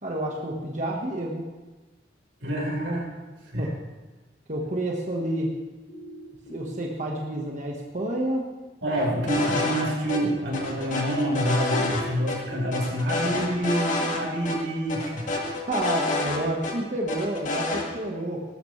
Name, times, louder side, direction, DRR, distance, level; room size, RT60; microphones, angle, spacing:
voice 1, 0.0-1.5 3.6-3.7 4.5-5.5 6.5-8.5 15.7-18.4, right 1 dB, 40° right, -1 dB, 1.4 m, -29 dB
voice 2, 2.4-3.1 3.4-3.7 8.8-15.3, equal, 90° right, -3 dB, 4.7 m, -27 dB
sound 1, 5.9-6.9 8.9-9.9 11.9-12.9, right 1 dB, 80° left, 5.1 m, -42 dB
sound 2, 9.3-9.8 10.1-10.2 10.5-12.0 12.3-12.4 12.7-14.2 14.5-14.6 14.9-16.7 17.1-17.8, left 2 dB, 45° left, 2.2 m, -28 dB
19.0 x 13.0 x 3.3 m, 1.2 s
head